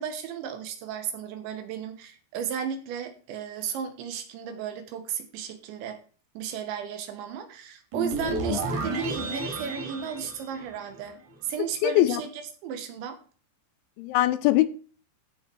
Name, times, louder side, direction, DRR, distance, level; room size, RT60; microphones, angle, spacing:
voice 1, 0.0-6.0 6.4-11.2 11.4-13.2, right 8 dB, 75° right, 3.7 m, -34 dB
sound 1, 7.9-11.2, right 2 dB, 55° right, 4.8 m, -32 dB
voice 2, 11.8-12.2 14.0-14.7, left 15 dB, 85° left, 3.1 m, -22 dB
14.0 x 6.7 x 4.7 m
omnidirectional pair, 5.3 m